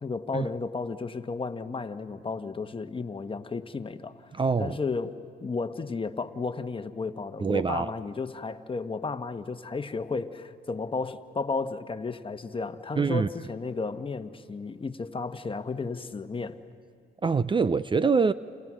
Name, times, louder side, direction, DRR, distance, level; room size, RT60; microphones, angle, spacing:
voice 1, 0.0-4.3 4.6-16.6, left 4 dB, 30° left, 9 dB, 1.3 m, -33 dB
voice 2, 4.3-4.8 7.4-7.9 13.0-13.3 17.2-18.3, right 5 dB, 25° right, 15 dB, 0.6 m, -24 dB
29.0 x 28.5 x 6.3 m, 2.3 s
supercardioid pair, 70°, 19 cm